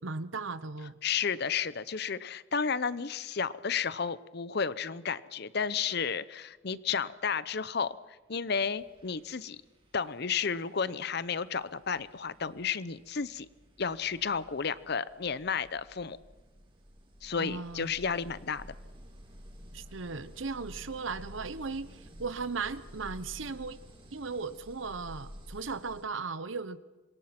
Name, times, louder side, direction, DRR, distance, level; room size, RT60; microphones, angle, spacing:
voice 1, 0.0-1.0 17.4-17.9 19.7-23.8 24.1-26.8, right 4 dB, 85° right, 14 dB, 1.0 m, -37 dB
voice 2, 1.0-8.0 8.3-9.6 9.9-13.5 13.8-16.2 17.2-18.7, left 6 dB, 55° left, 16 dB, 0.8 m, -32 dB
sound 1, 8.2-8.4 8.8-26.0, equal, 30° right, 3.7 m, -52 dB
27.0 x 22.0 x 5.9 m, 1.2 s
head